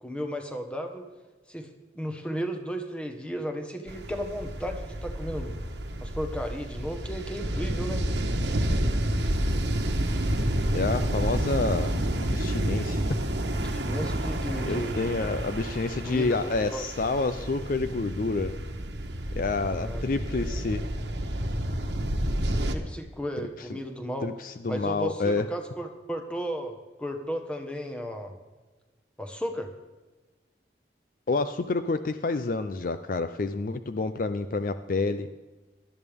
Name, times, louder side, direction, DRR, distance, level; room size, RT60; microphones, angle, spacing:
voice 1, 0.0-1.1 1.5-1.7 1.9-5.6 6.0-8.1 13.6-15.0 16.0-16.8 19.7-20.0 22.7-24.3 24.7-28.3 29.2-29.7, equal, 5° left, 5 dB, 1.2 m, -34 dB
sound 1, 3.9-22.7, right 1 dB, 70° right, 1.2 m, -29 dB
voice 2, 10.7-12.0 12.2-13.0 14.7-18.5 19.4-20.8 23.4-23.5 24.2-25.5 31.3-35.3, left 3 dB, 50° left, 10 dB, 0.5 m, -28 dB
17.5 x 12.5 x 3.6 m, 1.2 s
head